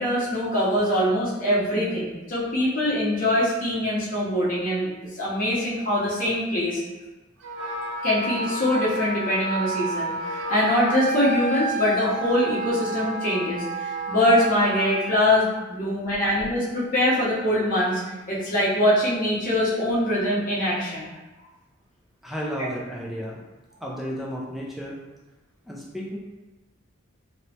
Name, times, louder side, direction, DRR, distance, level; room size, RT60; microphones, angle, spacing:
voice 1, 0.0-6.8 8.0-18.0 18.3-21.1 22.6-22.7, left 1 dB, 40° left, -7 dB, 0.8 m, -23 dB
Wind instrument woodwind instrument, 7.4-15.1, right 2 dB, 75° right, 0.5 m, -30 dB
voice 2, 22.2-23.4 23.8-25.0 25.7-26.2, equal, ahead, -4 dB, 0.4 m, -33 dB
3.0 x 2.1 x 2.7 m, 1.1 s
head